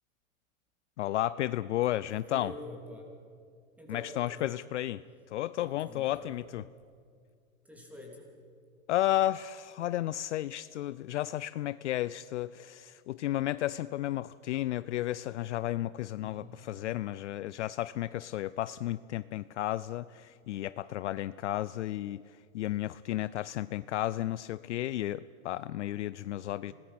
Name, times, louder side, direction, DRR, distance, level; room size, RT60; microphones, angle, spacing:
voice 1, 1.0-2.5 3.9-5.0 5.3-6.7 8.9-22.2 22.5-26.7, left 14 dB, 55° left, 17 dB, 0.5 m, -33 dB
voice 2, 2.0-3.1 3.8-4.6 5.6-6.5 7.7-8.3 16.2-16.6 26.7-26.8, left 1 dB, 5° right, 0 dB, 3.2 m, -47 dB
26.5 x 19.0 x 5.9 m, 2.3 s
hypercardioid pair, 155°, 42 cm